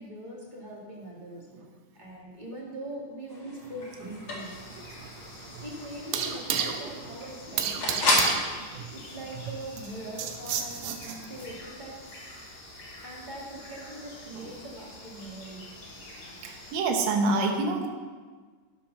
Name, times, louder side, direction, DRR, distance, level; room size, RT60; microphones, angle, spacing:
voice 1, 0.0-1.5 1.9-4.5 5.6-8.3 8.9-11.9 13.0-15.6, right 1 dB, 20° right, -4 dB, 1.3 m, -41 dB
sound 1, 3.3-8.4, left 1 dB, 35° left, 2.3 m, -32 dB
sound 2, 3.6-11.5, right 8 dB, 80° right, 2.3 m, -34 dB
sound 3, 4.4-16.7, left 1 dB, 60° left, 4.3 m, -47 dB
voice 2, 16.4-17.9, right 3 dB, 65° right, 2 dB, 2.0 m, -27 dB
12.0 x 5.9 x 5.9 m, 1.4 s
omnidirectional pair, 3.9 m